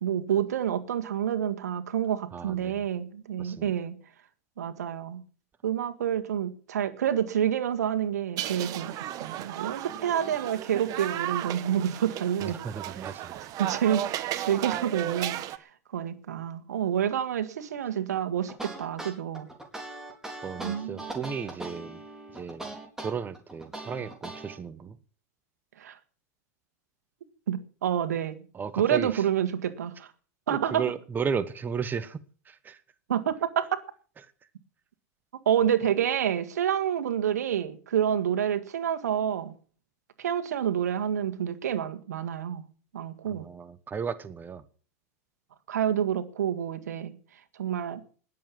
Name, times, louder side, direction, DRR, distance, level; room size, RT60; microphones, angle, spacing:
voice 1, 0.0-4.0 4.6-5.2 5.6-12.6 13.6-19.5 20.6-21.1 25.8-26.0 27.5-28.4 28.8-30.1 30.5-30.8 33.1-33.8 35.5-39.5 40.2-42.6 42.9-43.4 45.7-47.1 47.6-48.0, right 9 dB, 85° right, 1.8 m, -28 dB
voice 2, 2.3-2.7 3.4-3.7 12.4-13.3 20.4-22.0 22.4-22.6 23.0-25.0 28.5-29.1 30.5-32.2 32.5-32.8 43.3-44.6, right 6 dB, 20° right, 1.2 m, -34 dB
sound 1, 8.4-15.6, right 12 dB, 45° right, 1.3 m, -34 dB
sound 2, 18.5-24.6, right 2 dB, 5° right, 4.3 m, -40 dB
20.0 x 7.6 x 7.4 m
hypercardioid pair, 110°, 9 cm